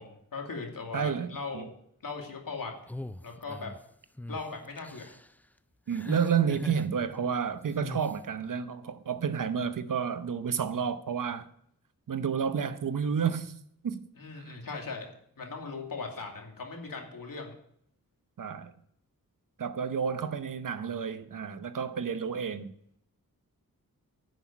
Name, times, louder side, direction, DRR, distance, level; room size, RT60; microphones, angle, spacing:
voice 1, 0.0-1.7 2.0-2.7 3.2-3.7 4.3-5.1 14.2-15.1 15.4-17.5, left 4 dB, 65° left, 2.6 m, -39 dB
voice 2, 0.9-1.7 5.9-11.5 12.1-13.5 13.8-14.1 14.3-14.4 18.4-18.7 19.6-22.7, right 7 dB, 60° right, 0.9 m, -30 dB
sound 1, 2.9-3.8 4.2-4.4 4.8-5.3 5.9-6.9 7.8-8.1, left 1 dB, 5° left, 0.3 m, -40 dB
10.5 x 6.1 x 8.3 m
wide cardioid pair, 75°, 36 cm